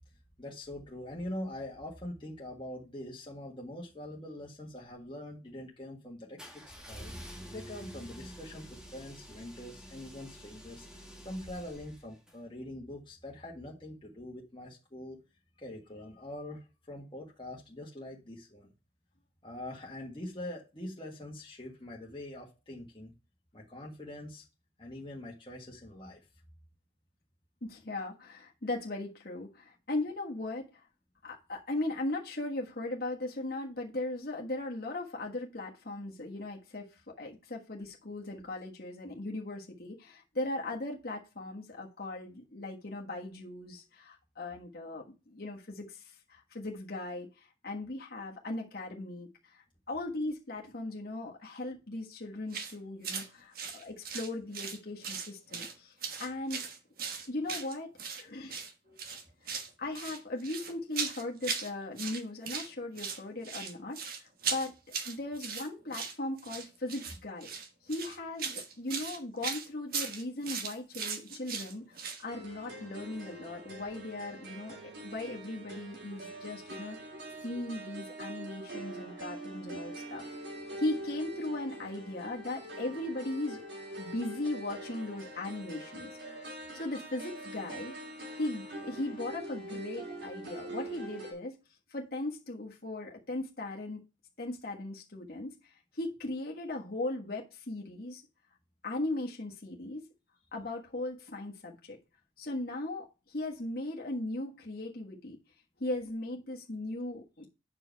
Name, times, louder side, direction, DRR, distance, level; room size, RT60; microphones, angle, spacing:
voice 1, 0.4-10.9 11.2-15.2 15.6-18.7 19.4-23.1 23.5-24.4 24.8-26.2 58.8-59.0, left 1 dB, 25° left, 1.6 m, -44 dB
sound 1, 6.4-12.4, equal, 5° right, 1.3 m, -48 dB
voice 2, 27.6-30.8 31.2-56.6 57.2-57.9 58.2-58.6 59.4-64.7 65.0-67.5 67.8-77.0 77.4-80.2 80.8-83.6 84.0-86.2 86.7-87.9 88.4-91.6 91.9-94.0 94.4-98.2 98.8-100.0 100.5-102.0 102.4-105.4 105.8-107.5, left 2 dB, 55° left, 1.5 m, -38 dB
sound 2, 52.5-52.7 53.0-53.3 53.5-54.8 55.0-55.7 56.0-58.2 58.5-58.7 59.0-59.7 59.9-61.7 62.0-62.7 63.0-72.2, right 6 dB, 50° right, 1.3 m, -38 dB
sound 3, 72.3-91.3, right 1 dB, 70° right, 3.6 m, -44 dB
8.6 x 4.8 x 4.6 m
head